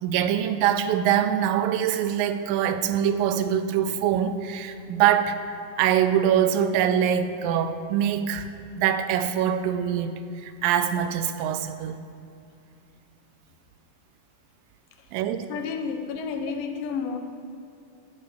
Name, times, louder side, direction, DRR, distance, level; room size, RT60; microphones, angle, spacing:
voice 1, 0.0-8.5 8.8-12.0 15.1-15.5, right 9 dB, 90° right, 10 dB, 2.3 m, -24 dB
voice 2, 15.5-17.2, left 5 dB, 80° left, 6 dB, 2.5 m, -30 dB
14.5 x 6.8 x 4.9 m, 2.6 s
omnidirectional pair, 4.0 m